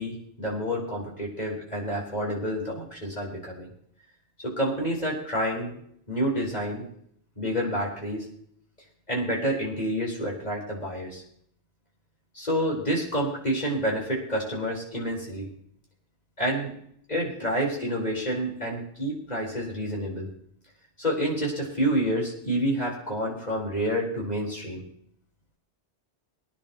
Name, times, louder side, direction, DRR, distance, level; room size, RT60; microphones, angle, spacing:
voice 1, 0.0-3.7 4.4-5.8 6.1-6.8 7.4-8.3 9.1-11.2 12.3-15.5 16.4-16.7 17.1-20.3 21.0-24.8, equal, 35° left, -3 dB, 4.8 m, -28 dB
24.0 x 10.0 x 3.1 m, 0.66 s
omnidirectional pair, 1.2 m